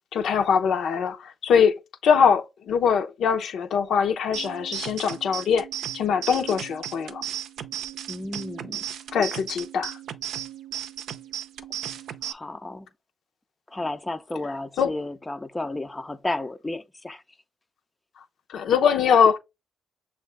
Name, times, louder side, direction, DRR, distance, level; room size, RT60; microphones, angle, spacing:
voice 1, 0.1-5.7 5.9-7.2 9.1-9.9 14.8-14.9 18.5-19.4, left 7 dB, 70° left, 0.7 m, -22 dB
sound 1, 4.3-12.3, right 11 dB, 75° right, 0.5 m, -35 dB
voice 2, 8.1-8.8 12.2-12.9 13.7-17.2, left 2 dB, 15° left, 0.5 m, -32 dB
6.4 x 2.5 x 3.3 m
cardioid pair, 90°, 0 cm